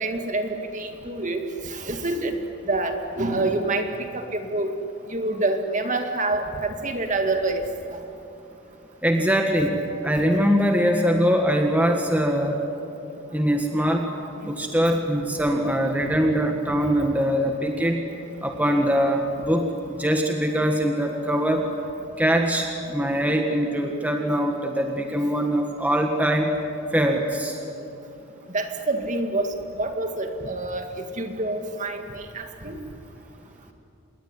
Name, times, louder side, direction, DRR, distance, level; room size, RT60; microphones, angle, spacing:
voice 1, 0.0-1.4 1.7-2.3 2.7-3.9 4.1-4.7 5.1-7.6 28.5-29.5 29.8-30.9 31.2-32.7, right 2 dB, 35° right, 5 dB, 2.1 m, -26 dB
voice 2, 9.0-9.8 10.0-12.6 13.3-14.0 14.4-18.0 18.4-19.7 20.0-21.6 22.2-26.5 26.9-27.6, equal, 5° right, 2 dB, 1.6 m, -22 dB
27.0 x 21.0 x 10.0 m, 2.7 s
head